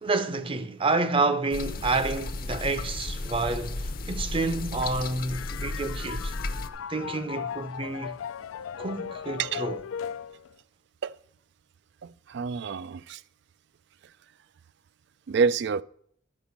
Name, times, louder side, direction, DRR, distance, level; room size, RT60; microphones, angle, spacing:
voice 1, 0.0-6.3 6.9-8.2 8.8-9.8, right 3 dB, 25° right, 0.6 m, -29 dB
sound 1, 1.5-6.7, left 2 dB, 45° left, 0.7 m, -34 dB
sound 2, 5.3-10.5, left 7 dB, 80° left, 0.4 m, -37 dB
voice 2, 12.0-13.2 15.3-15.8, right 5 dB, 60° right, 0.3 m, -27 dB
11.5 x 5.1 x 7.1 m
head